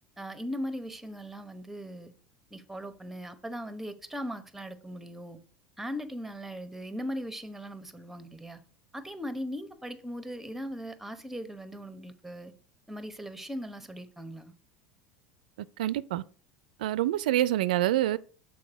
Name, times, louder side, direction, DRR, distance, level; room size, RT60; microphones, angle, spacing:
voice 1, 0.2-2.1 2.5-5.4 5.8-8.6 8.9-12.5 12.9-14.5, equal, 5° right, 0.9 m, -39 dB
voice 2, 15.8-16.2 16.8-18.2, right 14 dB, 75° right, 0.4 m, -26 dB
6.4 x 4.1 x 4.9 m
hypercardioid pair, 85°, 5 cm